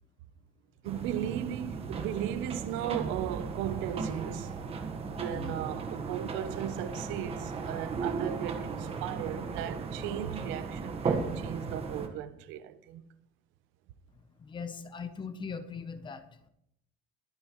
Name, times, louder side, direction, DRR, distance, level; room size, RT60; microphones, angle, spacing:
sound 1, 0.8-12.1, right 4 dB, 30° right, 1.4 m, -36 dB
voice 1, 0.8-4.6 5.1-13.1, right 11 dB, 75° right, 0.8 m, -36 dB
voice 2, 5.2-5.6 14.4-16.3, left 5 dB, 25° left, 0.8 m, -40 dB
21.0 x 8.9 x 3.1 m
cardioid pair, 160°, 20 cm